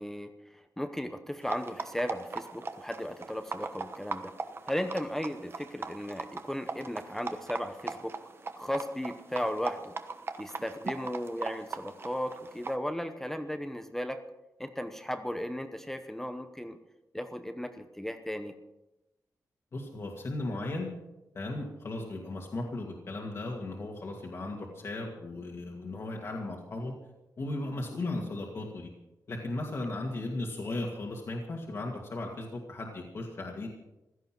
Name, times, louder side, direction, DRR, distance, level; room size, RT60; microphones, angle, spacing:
voice 1, 0.0-4.3 4.7-8.2 8.6-9.9 10.4-14.2 14.6-16.8 17.1-18.5, equal, 5° left, 8 dB, 0.9 m, -36 dB
sound 1, 1.4-12.8, right 4 dB, 40° right, 1.1 m, -40 dB
voice 2, 19.7-20.9 21.3-26.9 27.4-28.9 29.3-33.7, left 2 dB, 45° left, -1 dB, 2.2 m, -36 dB
16.0 x 13.0 x 6.1 m, 0.97 s
wide cardioid pair, 125°, 6 cm